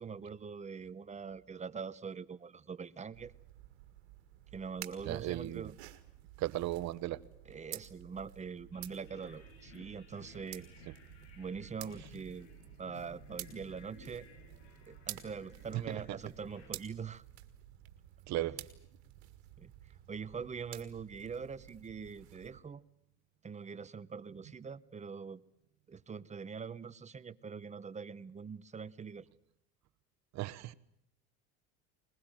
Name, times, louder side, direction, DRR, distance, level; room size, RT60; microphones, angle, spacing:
voice 1, 0.0-3.3 4.5-5.7 7.5-10.7 11.4-12.5 12.8-14.3 14.9-17.2 18.4-18.6 19.6-19.7 20.1-22.8 23.4-25.4 25.9-29.3, right 6 dB, 20° right, 16 dB, 0.9 m, -43 dB
sound 1, 3.1-22.6, right 15 dB, 90° right, 1.8 m, -51 dB
voice 2, 5.0-5.7 6.4-7.2 15.7-16.0 18.3-18.6 30.3-30.7, right 15 dB, 55° right, 15 dB, 1.1 m, -36 dB
sound 2, 8.7-16.7, left 5 dB, 85° left, 6.5 m, -57 dB
21.5 x 21.0 x 9.0 m, 0.76 s
supercardioid pair, 95°, 32 cm